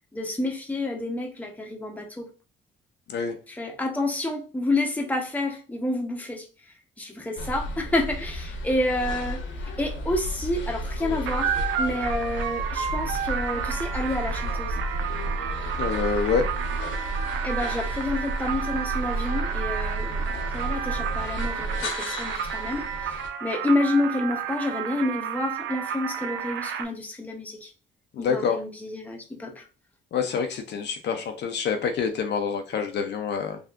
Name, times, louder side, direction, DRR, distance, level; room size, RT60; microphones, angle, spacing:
voice 1, 0.1-2.3 3.5-6.5 7.0-9.4 9.8-14.8 17.4-27.7 28.2-29.6, left 2 dB, 10° left, 0.7 m, -29 dB
sound 1, 7.4-23.3, right 1 dB, 75° left, 0.9 m, -32 dB
sound 2, 11.3-26.8, right 8 dB, 75° right, 0.4 m, -31 dB
voice 2, 15.8-16.5 28.1-28.6 30.1-33.6, left 6 dB, 60° left, 0.5 m, -26 dB
3.5 x 2.4 x 2.3 m
cardioid pair, 90°, 20 cm